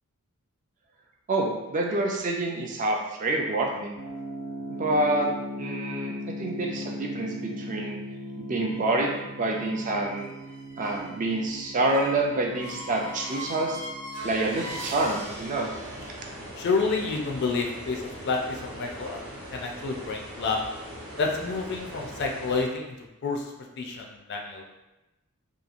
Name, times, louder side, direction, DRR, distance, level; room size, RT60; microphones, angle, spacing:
voice 1, 1.3-4.0 4.7-5.3 5.6-8.0 8.4-10.3 10.8-13.8 14.2-15.7, right 2 dB, 35° right, 0 dB, 0.3 m, -27 dB
sound 1, 4.0-18.7, equal, 90° left, 0.6 m, -40 dB
sound 2, 8.6-16.3, right 1 dB, 85° right, 0.5 m, -42 dB
sound 3, 14.2-22.6, equal, 60° right, 0.8 m, -41 dB
voice 2, 16.6-19.2 19.5-20.6 21.2-23.0 23.2-24.7, left 4 dB, 50° left, 1 dB, 0.4 m, -29 dB
2.9 x 2.3 x 2.4 m, 0.99 s
head